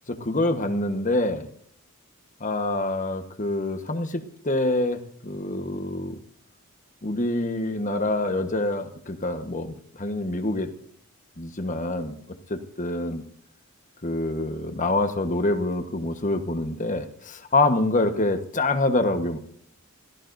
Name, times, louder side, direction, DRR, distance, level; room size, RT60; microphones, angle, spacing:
voice 1, 0.1-1.5 2.4-6.2 7.0-10.7 11.4-12.1 12.5-13.2 14.0-19.4, left 2 dB, 35° left, 7 dB, 1.3 m, -26 dB
28.0 x 16.5 x 2.7 m, 0.64 s
head